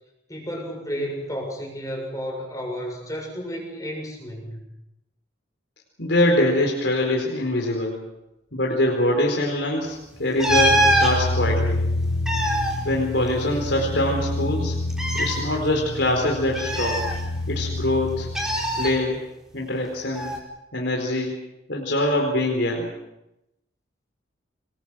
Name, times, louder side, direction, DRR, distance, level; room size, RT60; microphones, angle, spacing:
voice 1, 0.3-4.6, equal, 20° left, 1 dB, 7.1 m, -32 dB
voice 2, 6.0-8.0 8.5-11.8 12.8-14.8 15.1-17.0 17.5-18.3 18.7-19.2 19.5-20.3 20.7-21.4 21.7-22.9, left 1 dB, 70° left, 0 dB, 4.3 m, -23 dB
sound 1, 10.4-11.1 12.0-13.7 14.0-14.1 14.9-15.4 16.5-17.6 18.3-18.9 20.1-20.4, equal, 5° right, 4.6 m, -23 dB
sound 2, 10.5-19.0, left 2 dB, 90° left, 5.4 m, -28 dB
28.0 x 21.5 x 6.3 m, 0.90 s
head